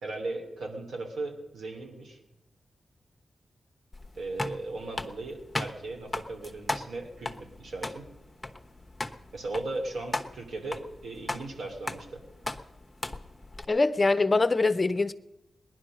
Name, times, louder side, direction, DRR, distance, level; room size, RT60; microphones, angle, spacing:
voice 1, 0.0-2.2 4.2-8.1 9.3-12.2, right 2 dB, 80° right, 3.0 m, -37 dB
sound 1, 3.9-13.6, left 2 dB, 20° left, 1.1 m, -37 dB
voice 2, 13.7-15.1, left 3 dB, 35° left, 0.7 m, -23 dB
18.5 x 11.0 x 6.3 m
cardioid pair, 65°, 0 cm